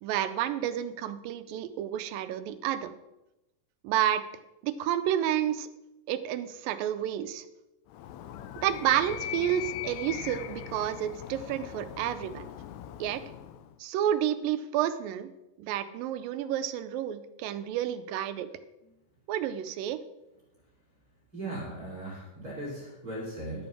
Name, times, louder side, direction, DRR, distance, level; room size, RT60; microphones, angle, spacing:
voice 1, 0.0-2.9 3.8-4.2 4.6-5.7 6.1-7.4 8.6-12.5 13.0-13.2 13.8-15.3 15.6-18.5 19.3-20.0, right 11 dB, 90° right, 11 dB, 2.4 m, -30 dB
Animal, 7.9-13.7, left 11 dB, 85° left, 1.6 m, -40 dB
voice 2, 21.3-23.7, right 1 dB, 30° right, -5 dB, 2.8 m, -38 dB
11.0 x 7.0 x 6.0 m, 0.97 s
omnidirectional pair, 3.9 m